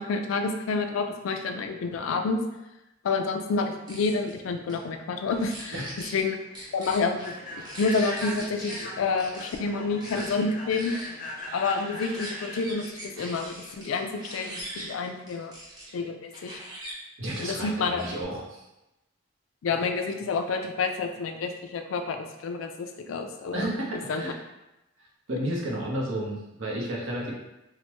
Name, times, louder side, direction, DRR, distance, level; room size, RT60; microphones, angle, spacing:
voice 1, 0.0-2.4 3.0-5.7 6.1-6.4 6.7-10.9 11.5-15.5 15.9-16.6 17.4-18.0 19.6-23.7 24.1-24.2, left 4 dB, 85° left, 6 dB, 0.4 m, -29 dB
sound 1, 3.7-4.3 4.7-4.8 5.3-6.2 6.5-8.8 9.2-9.6 10.0-10.3 10.7-15.8 16.3-16.9 17.2-18.2, right 1 dB, 20° right, 0.7 m, -42 dB
Human voice / Train, 5.6-14.4, left 1 dB, 40° left, 0.6 m, -40 dB
voice 2, 17.2-18.6 23.5-24.4 25.0-27.3, right 1 dB, 75° right, -3 dB, 0.8 m, -32 dB
3.2 x 2.1 x 2.9 m, 0.94 s
head